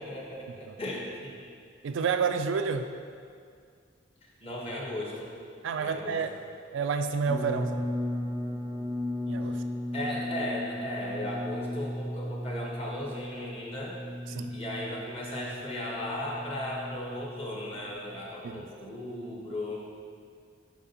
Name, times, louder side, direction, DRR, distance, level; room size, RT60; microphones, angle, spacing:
voice 1, 0.0-1.3 4.2-5.3 5.8-6.2 9.9-14.0 14.5-19.9, left 1 dB, 30° left, -3 dB, 1.2 m, -36 dB
voice 2, 1.8-2.9 5.6-6.3 6.7-7.9 9.3-9.6 14.3-14.6 18.4-18.6, right 5 dB, 75° right, 8 dB, 0.3 m, -29 dB
sound 1, 7.3-18.2, left 1 dB, 10° right, 0.5 m, -36 dB
8.4 x 5.9 x 2.9 m, 2.2 s
head